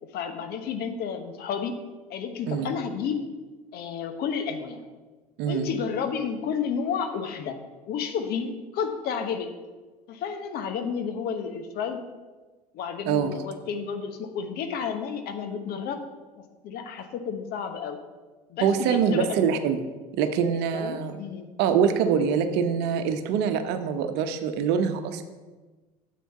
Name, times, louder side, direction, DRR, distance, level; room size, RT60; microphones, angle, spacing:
voice 1, 0.0-1.7 2.1-3.2 3.7-4.8 5.4-7.6 7.9-9.5 10.1-12.0 12.7-16.0 16.4-18.0 18.5-19.4 20.7-21.5, left 6 dB, 55° left, 7 dB, 1.2 m, -31 dB
voice 2, 18.6-19.8 20.2-21.2 21.6-25.2, right 7 dB, 60° right, 8 dB, 0.9 m, -24 dB
9.3 x 7.6 x 4.2 m, 1.3 s
hypercardioid pair, 70°, 20 cm